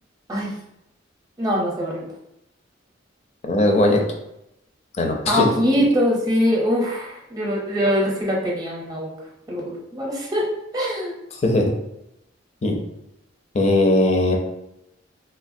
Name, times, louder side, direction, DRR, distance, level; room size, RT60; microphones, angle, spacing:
voice 1, 1.4-2.1 5.3-9.1 9.5-10.5 10.7-11.1, equal, 20° right, -3 dB, 0.7 m, -22 dB
voice 2, 3.4-4.0 5.0-5.5 11.3-11.6 12.6-12.8 13.5-14.4, left 1 dB, 35° left, 2 dB, 0.4 m, -18 dB
3.2 x 2.2 x 2.6 m, 0.84 s
head